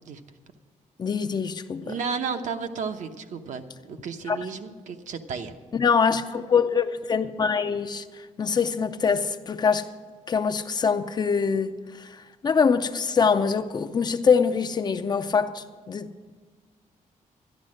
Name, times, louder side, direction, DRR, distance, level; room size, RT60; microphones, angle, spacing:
voice 1, 1.0-2.0 4.3-4.4 5.7-9.9 10.3-16.3, left 6 dB, 30° left, 0.5 m, -24 dB
voice 2, 1.8-5.5, right 5 dB, 65° right, 0.9 m, -33 dB
12.5 x 10.5 x 6.4 m
wide cardioid pair, 165°, 14 cm